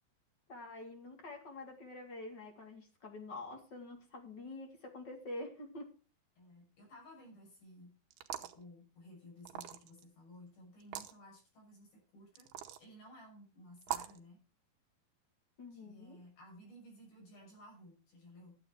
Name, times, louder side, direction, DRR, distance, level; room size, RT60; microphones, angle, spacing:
voice 1, 0.5-5.9 15.6-16.2, left 2 dB, 35° left, 4 dB, 2.0 m, -47 dB
voice 2, 6.4-7.9 8.4-12.5 12.8-14.4 15.7-18.6, equal, 70° left, -2 dB, 8.8 m, -56 dB
sound 1, 8.1-8.6 9.5-10.0 10.8-11.1 12.4-12.8 13.8-14.2, right 12 dB, 80° right, 2.9 m, -41 dB
12.5 x 7.9 x 4.7 m, 0.33 s
omnidirectional pair, 4.4 m